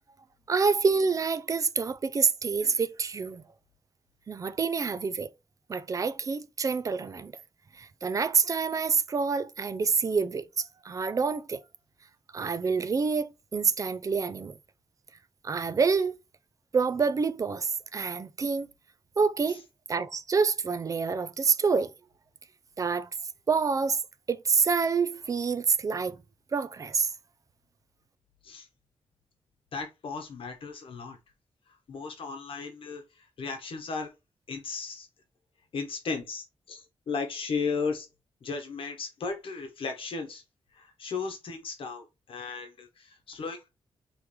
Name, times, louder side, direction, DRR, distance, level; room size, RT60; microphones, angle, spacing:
voice 1, 0.5-3.4 4.3-5.3 5.7-7.3 7.8-11.6 12.3-14.5 15.4-16.2 16.7-18.7 19.2-19.6 19.9-21.9 22.8-23.1 23.5-24.0 24.3-26.2 26.5-27.1, right 5 dB, 35° right, 0.4 m, -27 dB
voice 2, 29.7-31.2 31.9-34.1 34.5-35.1 35.7-38.1 38.4-40.4 40.7-43.7, left 4 dB, 70° left, 1.1 m, -35 dB
5.0 x 3.1 x 3.1 m
wide cardioid pair, 140°, 9 cm